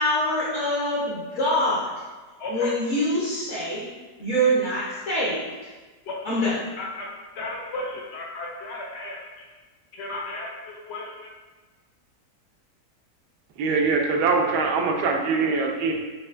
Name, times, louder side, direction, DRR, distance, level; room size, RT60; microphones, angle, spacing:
voice 1, 0.0-1.9 2.5-3.8 4.2-5.7 6.2-6.6, equal, 55° left, -7 dB, 1.0 m, -24 dB
voice 2, 2.4-2.7 6.1-6.2 6.8-7.1 7.3-9.5 9.9-11.3, left 2 dB, 80° left, -2 dB, 0.5 m, -34 dB
voice 3, 13.6-15.9, right 4 dB, 80° right, 2 dB, 1.2 m, -23 dB
5.3 x 2.8 x 2.5 m, 1.3 s
omnidirectional pair, 1.8 m